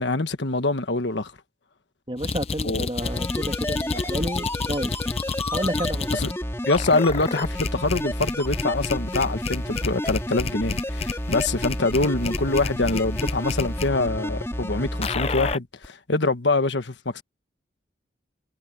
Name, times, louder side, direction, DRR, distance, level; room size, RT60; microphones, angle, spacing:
voice 1, 0.0-1.3 2.6-2.9 3.9-4.0 6.2-6.3 6.7-17.2, left 2 dB, 85° left, 1.4 m, -25 dB
voice 2, 2.1-5.0 5.5-6.1, right 1 dB, 30° right, 2.2 m, -31 dB
sound 1, 2.2-6.3 6.7-13.9 15.0-15.6, left 4 dB, 35° left, 0.5 m, -30 dB
sound 2, 3.0-15.5 15.8-15.9, left 1 dB, 15° left, 2.9 m, -31 dB
head